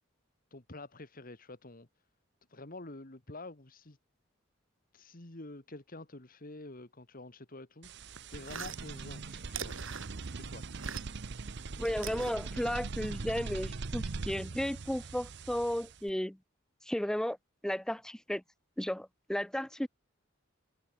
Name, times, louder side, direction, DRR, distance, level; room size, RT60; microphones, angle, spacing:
voice 1, 0.5-1.9 2.5-4.0 4.9-7.9 8.3-9.8 10.3-10.6, left 2 dB, 45° left, 2.2 m, -48 dB
sound 1, 7.8-16.1, right 3 dB, 60° right, 0.8 m, -41 dB
sound 2, 8.1-11.3 11.6-13.1, right 7 dB, 80° right, 5.6 m, -44 dB
voice 2, 11.8-16.4 16.9-17.4 17.6-18.4 18.8-19.9, equal, 5° left, 0.4 m, -34 dB
head